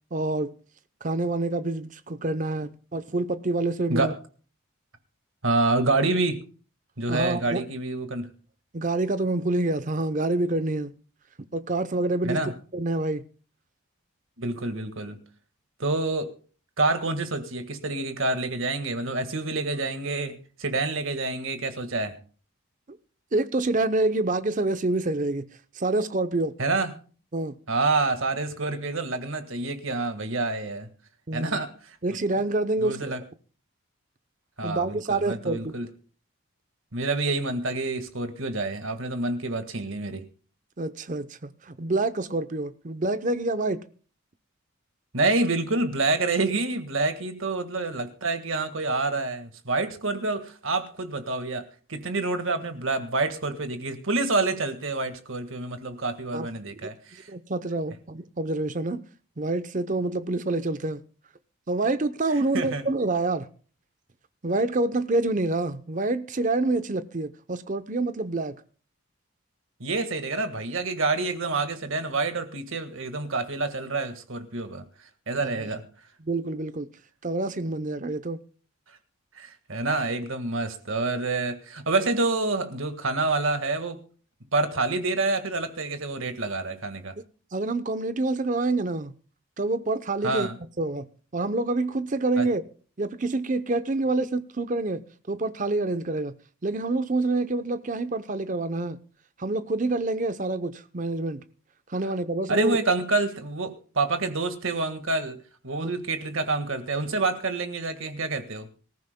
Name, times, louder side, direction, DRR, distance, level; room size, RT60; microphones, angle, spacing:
voice 1, 0.1-0.5 1.0-4.1 7.1-7.6 8.7-10.9 11.5-12.4 12.7-13.2 23.3-25.5 25.8-26.5 27.3-27.6 31.3-31.6 32.0-33.1 34.6-35.7 40.8-43.8 56.3-56.5 56.7-56.8 57.3-59.0 59.4-61.0 61.7-63.5 64.4-68.6 75.4-75.5 76.2-76.9 77.2-78.4 87.5-89.1 89.6-90.5 90.8-91.1 91.3-92.6 93.0-95.0 95.3-96.3 96.6-99.0 99.4-101.4 101.9-102.8 105.8-105.9, right 2 dB, 35° right, 0.7 m, -27 dB
voice 2, 5.4-6.4 7.0-8.3 12.2-12.5 14.4-15.2 15.8-16.3 16.8-22.2 26.6-26.9 27.7-30.9 31.3-32.0 32.8-33.2 34.6-35.9 36.9-40.2 45.1-57.3 62.3-62.8 69.8-75.8 79.3-84.0 84.5-87.1 90.2-90.6 92.4-92.5 102.5-108.7, right 3 dB, 70° right, 1.7 m, -27 dB
25.0 x 14.5 x 2.2 m
head